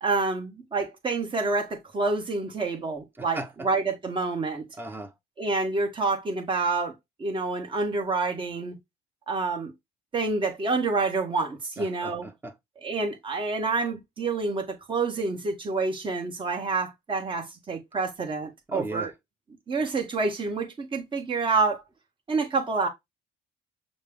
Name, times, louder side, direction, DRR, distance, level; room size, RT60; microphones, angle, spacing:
voice 1, 0.0-4.6 5.4-6.9 7.2-8.8 9.3-9.7 10.1-12.3 12.8-19.1 19.7-21.8 22.3-22.9, right 3 dB, 30° right, 1.1 m, -28 dB
voice 2, 3.2-3.5 4.8-5.1 11.8-12.5 18.7-19.1, right 2 dB, 10° right, 0.8 m, -36 dB
6.3 x 2.1 x 3.5 m
cardioid pair, 110°, 17 cm